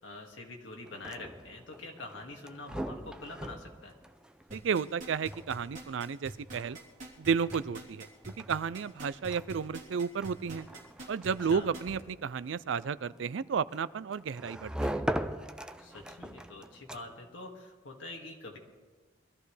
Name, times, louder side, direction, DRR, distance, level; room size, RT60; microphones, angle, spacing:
voice 1, 0.0-3.9 11.4-11.7 15.8-18.6, left 2 dB, 75° left, 1 dB, 2.1 m, -45 dB
sound 1, 0.8-17.4, right 1 dB, 5° right, 0.5 m, -42 dB
sound 2, 4.5-12.0 12.5-12.6, right 2 dB, 40° right, 3.1 m, -45 dB
voice 2, 4.5-6.8 7.2-8.1 8.4-10.7 11.1-15.0, right 6 dB, 70° right, 18 dB, 0.4 m, -32 dB
22.5 x 14.0 x 3.3 m, 1.4 s
head